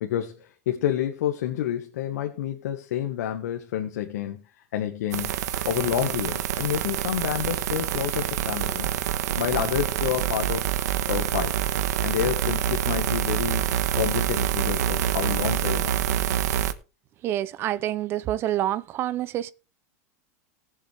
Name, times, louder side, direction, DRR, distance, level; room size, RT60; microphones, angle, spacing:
voice 1, 0.0-4.4 4.7-5.4 5.6-8.9 9.4-10.7 11.1-11.6 12.0-13.6 13.9-16.0, left 11 dB, 80° left, 1.5 m, -29 dB
sound 1, 5.1-16.7, right 11 dB, 90° right, 1.2 m, -26 dB
voice 2, 17.2-19.5, right 12 dB, 25° right, 0.5 m, -27 dB
18.5 x 7.4 x 3.4 m
supercardioid pair, 165°, 9 cm